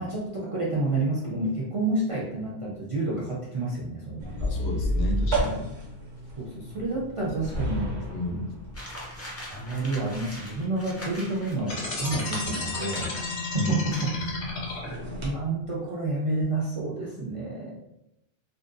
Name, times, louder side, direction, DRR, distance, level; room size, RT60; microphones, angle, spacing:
voice 1, 0.0-4.5 6.4-8.0 9.5-14.1 14.9-17.7, right 2 dB, 55° right, -6 dB, 0.3 m, -29 dB
sound 1, 4.2-15.4, equal, 85° right, 1.1 m, -34 dB
voice 2, 4.5-5.6 8.1-8.5 13.5-13.9 14.3-14.4, left 2 dB, 80° left, 1 dB, 0.8 m, -31 dB
sound 2, 8.7-13.5 13.9-14.4, equal, 20° left, 0.4 m, -42 dB
sound 3, 11.6-15.2, left 3 dB, 55° left, 0.9 m, -33 dB
2.6 x 2.2 x 2.4 m, 0.86 s
omnidirectional pair, 1.1 m